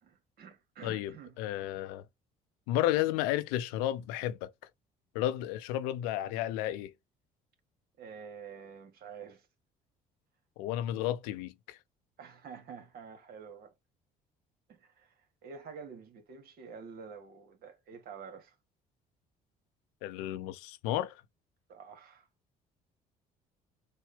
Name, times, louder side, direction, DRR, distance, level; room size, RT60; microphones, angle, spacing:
voice 1, 0.0-1.4 8.0-9.5 12.2-13.7 14.7-15.1 15.4-18.5 21.7-22.3, right 6 dB, 65° right, 1.4 m, -48 dB
voice 2, 0.8-2.0 2.7-4.5 5.1-6.9 10.6-11.8 20.0-21.2, left 13 dB, 85° left, 0.6 m, -32 dB
6.3 x 2.2 x 3.3 m
supercardioid pair, 70°, 17 cm